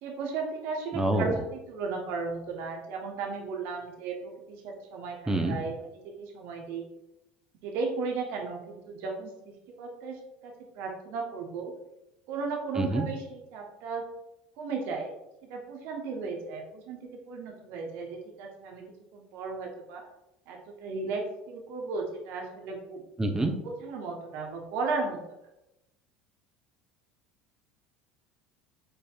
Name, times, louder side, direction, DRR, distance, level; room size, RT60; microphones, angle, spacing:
voice 1, 0.0-6.8 7.6-9.3 9.8-11.7 12.3-14.0 14.6-15.1 15.4-18.8 19.1-20.0 20.5-23.0 23.6-25.2, right 4 dB, 65° right, 1 dB, 1.0 m, -35 dB
voice 2, 0.9-1.4 5.3-5.6 12.8-13.1 23.2-23.5, right 1 dB, 15° right, 4 dB, 0.8 m, -26 dB
5.2 x 4.2 x 2.4 m, 0.90 s
hypercardioid pair, 75°, 4 cm